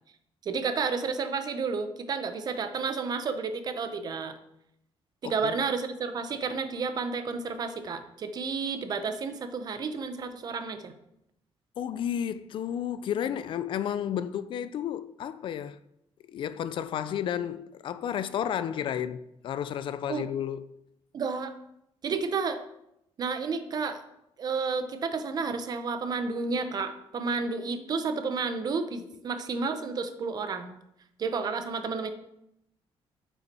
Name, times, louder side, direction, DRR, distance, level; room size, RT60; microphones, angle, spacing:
voice 1, 0.4-4.3 5.2-10.9 20.1-20.3 21.1-21.5 22.0-22.6 23.2-24.0 24.4-30.8 31.2-32.1, right 4 dB, 40° right, 0.7 m, -31 dB
voice 2, 5.2-5.6 11.8-15.8 16.3-20.6, left 9 dB, 50° left, 0.4 m, -32 dB
8.8 x 5.6 x 4.1 m
cardioid pair, 175°, 11 cm